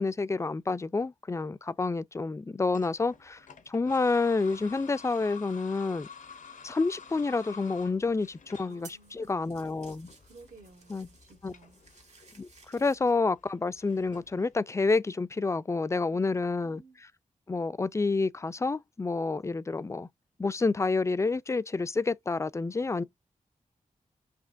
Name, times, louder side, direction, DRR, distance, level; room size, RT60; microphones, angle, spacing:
voice 1, 0.0-6.1 6.6-10.1 10.9-11.1 11.4-11.5 12.4-16.8 17.5-20.1 20.4-23.0, left 3 dB, 20° left, 0.3 m, -29 dB
sound 1, 2.7-14.6, left 6 dB, 70° left, 0.7 m, -51 dB
sound 2, 7.9-13.0, right 4 dB, 55° right, 1.5 m, -56 dB
voice 2, 8.6-9.4 10.2-11.8 16.1-17.0 22.9-23.0, right 3 dB, 75° right, 1.3 m, -55 dB
5.0 x 2.7 x 2.5 m
cardioid pair, 55°, 14 cm